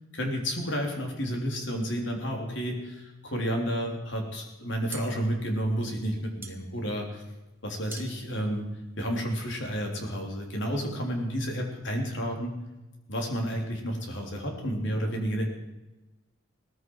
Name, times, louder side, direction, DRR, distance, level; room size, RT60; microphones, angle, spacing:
voice 1, 0.1-7.2 7.6-8.7 9.0-12.5 13.1-15.5, equal, 65° left, 2 dB, 3.3 m, -31 dB
sound 1, 4.6-9.5, right 4 dB, 10° right, 1.3 m, -47 dB
18.0 x 14.5 x 4.7 m, 1.0 s
head